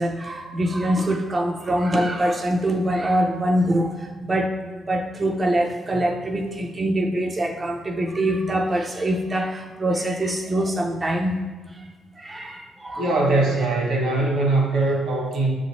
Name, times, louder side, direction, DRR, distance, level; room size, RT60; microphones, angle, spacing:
voice 1, 0.0-11.9 12.2-13.1, right 1 dB, 25° right, 3 dB, 0.4 m, -24 dB
voice 2, 12.9-15.5, right 2 dB, 85° right, -2 dB, 1.3 m, -21 dB
6.3 x 2.9 x 2.9 m, 1.4 s
cardioid pair, 90°, 0 cm